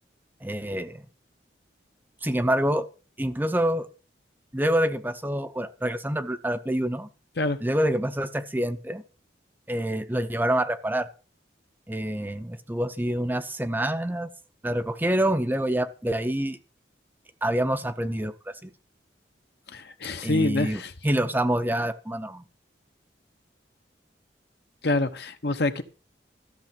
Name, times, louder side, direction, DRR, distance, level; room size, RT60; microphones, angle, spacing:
voice 1, 0.4-1.0 2.2-2.9 3.2-3.9 4.5-7.1 7.6-9.0 9.7-11.1 11.9-14.3 14.6-16.6 17.4-18.7 20.2-22.4, right 1 dB, 10° right, 0.5 m, -26 dB
voice 2, 19.7-20.9 24.8-25.8, left 2 dB, 60° left, 1.0 m, -26 dB
13.5 x 6.7 x 5.9 m
head